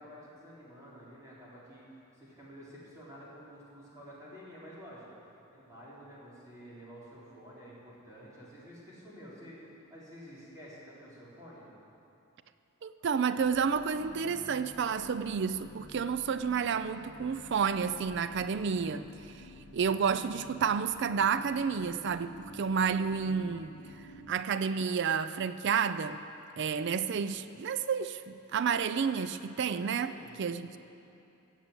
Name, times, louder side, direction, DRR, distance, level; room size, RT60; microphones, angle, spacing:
voice 1, 0.0-5.0 5.5-11.7 29.9-30.4 30.7-30.8, equal, 15° right, -8 dB, 3.9 m, -50 dB
voice 2, 12.8-23.7 24.3-26.2 26.6-30.8, right 6 dB, 50° right, 12 dB, 0.4 m, -30 dB
sound 1, 13.4-24.3, left 1 dB, 60° left, 1.6 m, -51 dB
16.0 x 7.4 x 8.2 m, 2.7 s
head